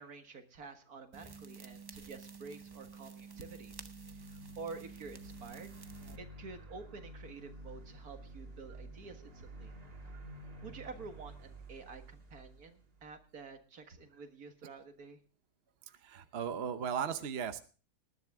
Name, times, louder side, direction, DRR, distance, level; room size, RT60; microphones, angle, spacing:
voice 1, 0.0-5.8 6.2-9.7 10.6-15.2, right 4 dB, 70° right, 7 dB, 2.1 m, -49 dB
sound 1, 1.1-6.2, right 5 dB, 25° right, 0.5 m, -50 dB
sound 2, 3.3-13.5, right 1 dB, 85° right, 3.0 m, -51 dB
voice 2, 15.9-17.6, right 7 dB, 50° right, 9 dB, 1.0 m, -37 dB
19.5 x 11.0 x 3.6 m, 0.38 s
omnidirectional pair, 1.6 m